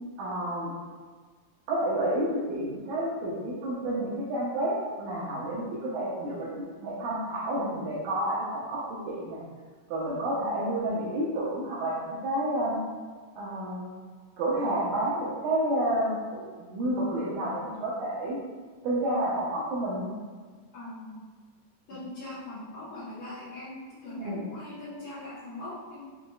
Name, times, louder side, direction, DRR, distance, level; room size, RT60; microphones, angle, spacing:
voice 1, 0.2-0.7 1.7-6.5 6.8-9.4 9.9-12.8 13.4-13.9 14.4-16.4 16.7-18.4 18.8-20.1 24.2-24.5, right 1 dB, 80° right, -7 dB, 2.1 m, -30 dB
voice 2, 20.7-21.2 21.9-26.0, left 2 dB, 65° left, -12 dB, 1.3 m, -41 dB
6.2 x 2.4 x 2.3 m, 1.5 s
omnidirectional pair, 3.6 m